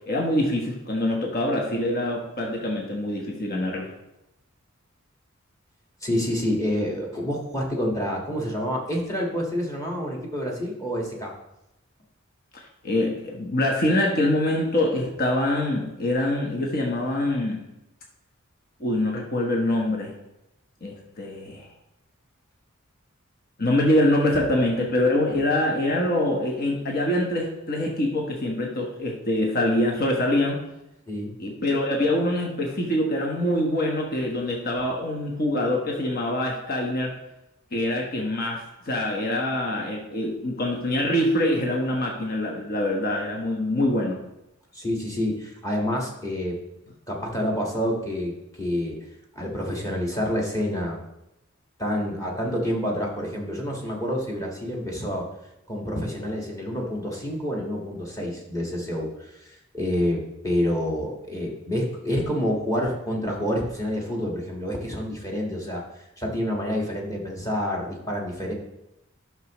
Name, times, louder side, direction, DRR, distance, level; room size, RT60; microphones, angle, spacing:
voice 1, 0.1-3.9 12.8-17.6 18.8-20.1 20.8-21.7 23.6-30.6 31.4-37.1 37.7-44.2, left 1 dB, 45° left, 0 dB, 1.2 m, -24 dB
voice 2, 6.0-11.3 31.1-31.3 44.7-46.6 47.1-49.0 49.3-51.0 51.8-55.3 55.7-68.5, equal, 15° left, -2 dB, 1.6 m, -28 dB
12.0 x 6.1 x 3.0 m, 0.90 s
head